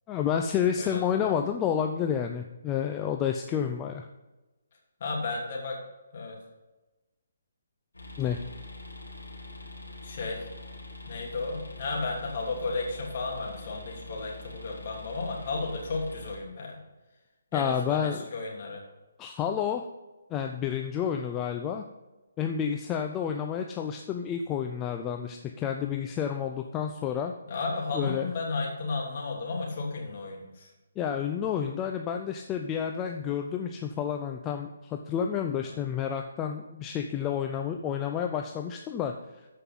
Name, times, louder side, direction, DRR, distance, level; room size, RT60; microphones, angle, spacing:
voice 1, 0.1-4.1 8.2-8.4 17.5-18.2 19.2-19.8 20.3-21.8 22.4-27.3 27.9-28.3 31.0-39.1, left 8 dB, 20° left, 3 dB, 0.5 m, -30 dB
voice 2, 0.8-1.3 5.0-5.8 6.1-6.4 10.0-10.5 11.1-16.8 17.5-18.8 27.5-30.7 35.6-35.8, left 3 dB, 45° left, -2 dB, 3.0 m, -33 dB
sound 1, 7.9-16.4, left 2 dB, 90° left, 3.5 m, -44 dB
14.0 x 5.5 x 3.9 m, 1.1 s
figure-of-eight pair, 140°, 0 cm